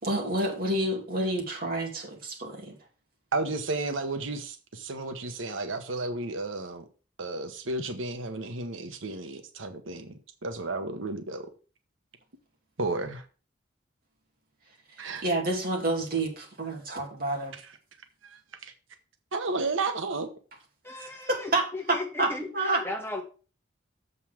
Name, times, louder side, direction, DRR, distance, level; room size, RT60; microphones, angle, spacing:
voice 1, 0.0-2.8 15.0-17.6 20.9-22.8, right 2 dB, 50° right, 2.5 m, -29 dB
voice 2, 3.3-6.8 7.2-11.5 12.8-13.2 15.0-15.2 18.2-18.7 19.3-20.3, right 3 dB, 90° right, 1.1 m, -33 dB
voice 3, 20.8-22.5 22.8-23.2, left 2 dB, 10° left, 1.3 m, -35 dB
7.2 x 5.5 x 6.1 m
head